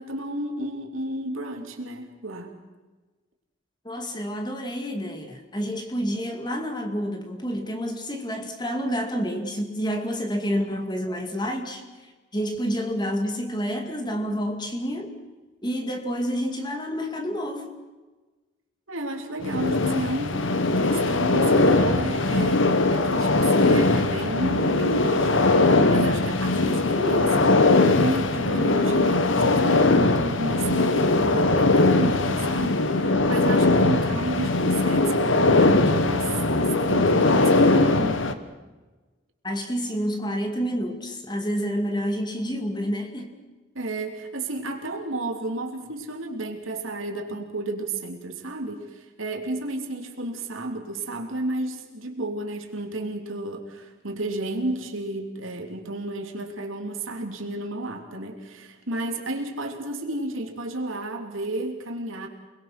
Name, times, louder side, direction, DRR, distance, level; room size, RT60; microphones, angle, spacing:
voice 1, 0.0-2.5 18.9-20.4 20.8-22.6 22.9-38.2 43.7-62.3, right 1 dB, 80° right, 3 dB, 3.2 m, -32 dB
voice 2, 3.8-15.1 15.6-17.8 39.4-43.4, equal, 20° left, 4 dB, 2.3 m, -29 dB
sound 1, 19.4-38.3, left 2 dB, 70° left, 1.3 m, -20 dB
29.0 x 21.5 x 6.0 m, 1.2 s
head